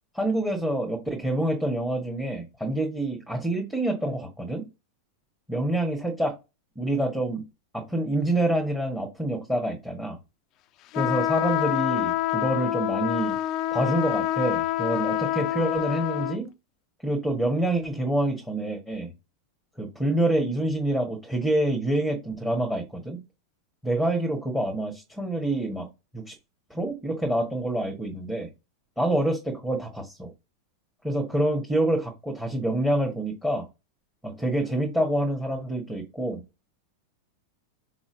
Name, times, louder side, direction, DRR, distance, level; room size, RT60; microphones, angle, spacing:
voice 1, 0.1-4.7 5.5-6.3 6.7-7.5 7.7-10.2 10.9-13.4 13.7-16.5 17.0-19.1 19.8-23.2 23.8-25.9 26.1-26.3 26.7-28.5 29.0-30.3 31.0-33.7 34.2-36.4, right 1 dB, 5° right, 1.6 m, -27 dB
sound 1, 10.9-16.4, left 14 dB, 35° left, 0.5 m, -27 dB
6.0 x 4.0 x 3.9 m
figure-of-eight pair, 90°, 0 cm